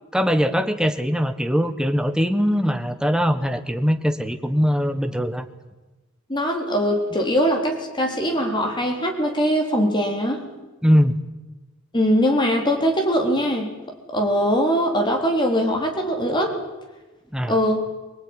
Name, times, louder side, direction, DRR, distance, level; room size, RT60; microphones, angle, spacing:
voice 1, 0.1-5.4 10.8-11.1 17.3-17.6, equal, 5° right, 7 dB, 1.4 m, -21 dB
voice 2, 6.3-10.4 11.9-13.7 14.1-16.6 17.5-17.9, equal, 20° left, 2 dB, 4.2 m, -21 dB
24.5 x 18.5 x 9.9 m, 1.1 s
head